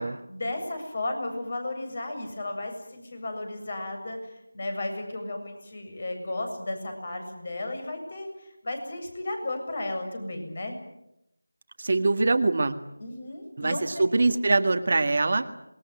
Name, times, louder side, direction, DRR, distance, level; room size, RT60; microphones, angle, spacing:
voice 1, 0.3-10.8 13.0-14.1, left 2 dB, 40° left, 5 dB, 7.5 m, -34 dB
voice 2, 11.8-12.7 13.6-15.5, right 3 dB, 45° right, 7 dB, 1.8 m, -23 dB
27.0 x 21.0 x 9.6 m, 0.84 s
figure-of-eight pair, 170°, 0 cm